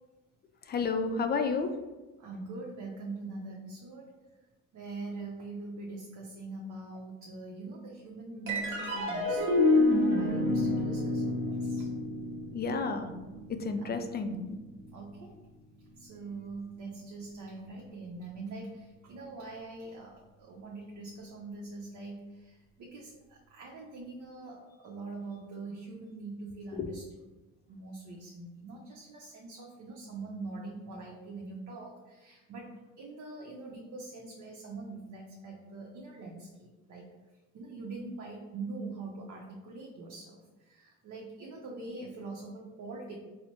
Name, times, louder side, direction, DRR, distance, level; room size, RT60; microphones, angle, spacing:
voice 1, 0.7-1.7 12.5-13.1 13.5-14.6 26.8-26.9, left 4 dB, 35° left, 7 dB, 0.4 m, -31 dB
voice 2, 2.2-4.1 4.7-9.6 10.1-11.9 13.8-13.9 14.9-15.3 16.0-27.3 27.7-37.0 37.5-43.1, right 3 dB, 70° right, -2 dB, 0.6 m, -43 dB
sound 1, 8.5-15.1, left 2 dB, 40° right, 0.9 m, -29 dB
4.0 x 2.0 x 2.9 m, 1.1 s
cardioid pair, 90°, 30 cm